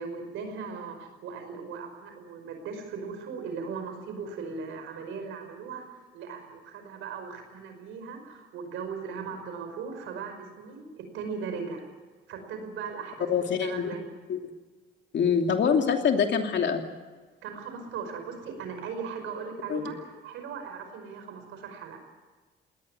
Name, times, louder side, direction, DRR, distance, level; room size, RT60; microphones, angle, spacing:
voice 1, 0.0-11.9 12.3-14.0 17.4-22.0, right 5 dB, 90° right, 6 dB, 5.3 m, -38 dB
voice 2, 13.3-14.0 14.3-14.4 15.1-16.8 19.7-19.8, left 6 dB, 65° left, 4 dB, 2.9 m, -25 dB
20.0 x 18.5 x 9.7 m, 1.3 s
cardioid pair, 90°, 20 cm